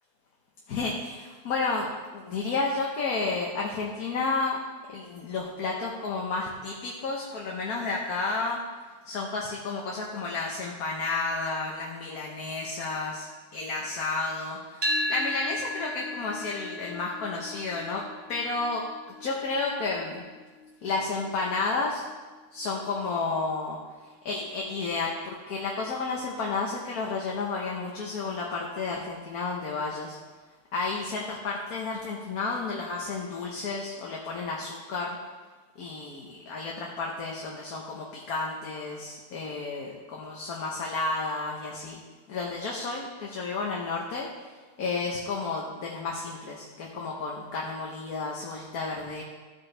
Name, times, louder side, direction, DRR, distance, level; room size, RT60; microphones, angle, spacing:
voice 1, 0.7-4.6 4.9-8.6 9.0-18.9 19.2-20.2 20.8-22.1 22.5-23.8 24.0-30.2 30.7-35.2 35.8-42.0 42.3-44.3 44.8-49.2, left 3 dB, 65° left, -2 dB, 1.5 m, -31 dB
sound 1, 14.8-23.0, left 1 dB, 35° right, 0.4 m, -36 dB
14.5 x 8.1 x 3.4 m, 1.3 s
omnidirectional pair, 1.7 m